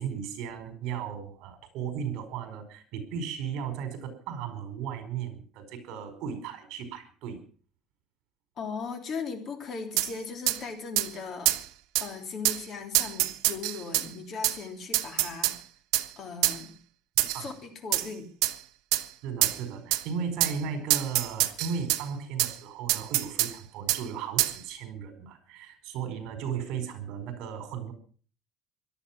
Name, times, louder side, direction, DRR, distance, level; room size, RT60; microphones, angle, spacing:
voice 1, 0.0-7.4 17.2-17.5 19.2-27.9, right 7 dB, 65° right, 8 dB, 4.7 m, -36 dB
voice 2, 8.6-11.7 12.0-15.5 16.2-16.7 17.3-17.5 17.8-18.3, left 5 dB, 40° left, 5 dB, 3.2 m, -38 dB
sound 1, 10.0-10.1 10.5-10.6 11.0-11.1 11.5-11.6 11.9-12.1 12.4-12.6 12.9-14.1 14.4-14.6 14.9-15.6 15.9-16.1 16.4-16.6 17.2-17.4 17.9-18.1 18.4-18.5 18.9-19.0 19.4-19.6 19.9-20.0 20.4-20.6 20.9-22.0 22.4-22.5 22.9-23.5 23.9-24.0 24.4-24.5, right 17 dB, 85° right, 1.2 m, -25 dB
18.0 x 12.5 x 5.9 m, 0.42 s
cardioid pair, 165°, 0 cm